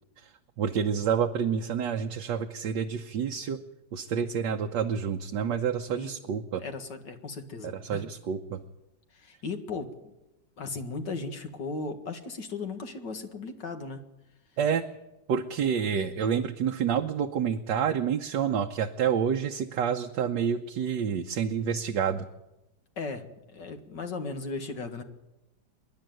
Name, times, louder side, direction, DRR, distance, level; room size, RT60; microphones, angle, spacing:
voice 1, 0.6-3.6 3.9-6.6 7.6-8.6 14.6-14.8 15.3-22.3, right 7 dB, 70° right, 3 dB, 1.5 m, -28 dB
voice 2, 6.6-8.0 9.1-10.1 10.6-14.0 23.0-25.0, left 3 dB, 65° left, 6 dB, 2.4 m, -36 dB
25.0 x 11.0 x 9.2 m, 0.96 s
omnidirectional pair, 2.0 m